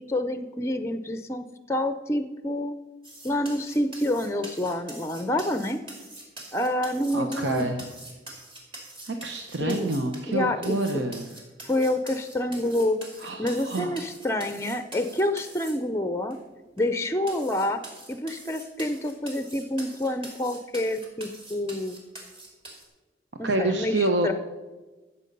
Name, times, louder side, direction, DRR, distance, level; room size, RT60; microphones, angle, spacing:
voice 1, 0.0-2.7 3.2-5.8 6.5-7.8 9.6-9.9 10.3-11.0 11.6-13.0 13.4-16.4 16.8-17.8 18.1-22.0 23.4-24.3, left 1 dB, 15° left, 10 dB, 0.5 m, -28 dB
sound 1, 3.0-10.3 10.6-15.7 16.3-16.4 16.8-16.9 17.3-22.9, right 1 dB, 30° right, 2.7 m, -44 dB
voice 2, 7.1-7.8 9.1-11.3 13.2-13.9 23.4-24.3, right 2 dB, 90° right, 5 dB, 0.8 m, -27 dB
15.0 x 7.1 x 5.3 m, 1.2 s
head